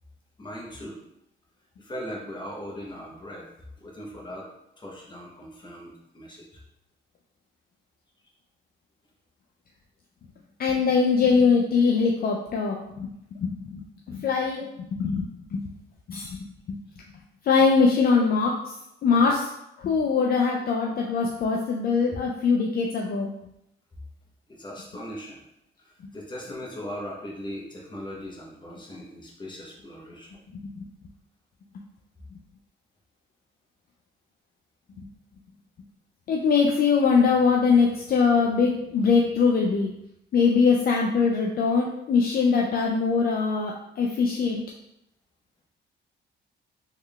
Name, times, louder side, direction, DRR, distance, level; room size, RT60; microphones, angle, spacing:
voice 1, 0.4-1.0 1.8-3.5 3.8-6.6 19.1-19.3 24.5-25.4 25.8-30.4, equal, 25° left, -2 dB, 0.9 m, -39 dB
voice 2, 10.6-13.1 13.4-15.7 16.1-16.4 16.7-16.8 17.4-18.7 19.0-19.4 19.8-23.3 30.5-30.8 35.0-35.1 36.3-39.9 40.3-44.6, left 5 dB, 50° left, 0 dB, 0.4 m, -22 dB
3.6 x 3.1 x 2.3 m, 0.82 s
cardioid pair, 90°, 20 cm